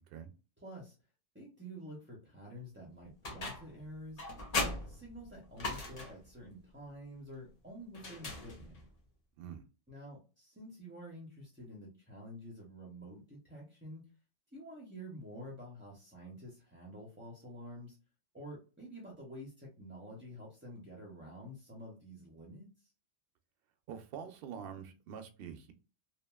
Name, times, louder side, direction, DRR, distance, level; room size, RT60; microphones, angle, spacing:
voice 1, 0.6-0.9 1.3-4.2 4.6-8.8 9.9-14.0 14.5-18.0 18.3-22.9, equal, 15° right, -2 dB, 0.5 m, -49 dB
sound 1, 3.2-3.8 4.2-6.3 7.9-8.9, left 2 dB, 45° left, 0.6 m, -38 dB
voice 2, 23.9-25.7, right 8 dB, 65° right, 7 dB, 0.7 m, -45 dB
2.8 x 2.5 x 2.2 m, 0.33 s
omnidirectional pair, 1.1 m